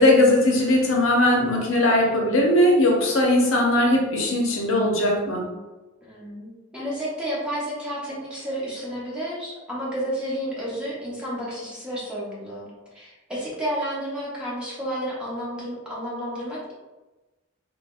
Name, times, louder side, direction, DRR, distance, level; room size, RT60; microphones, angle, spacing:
voice 1, 0.0-5.5, left 1 dB, 80° left, -1 dB, 0.7 m, -19 dB
voice 2, 6.0-16.7, equal, 5° right, -7 dB, 0.9 m, -31 dB
3.9 x 2.1 x 2.4 m, 1.1 s
head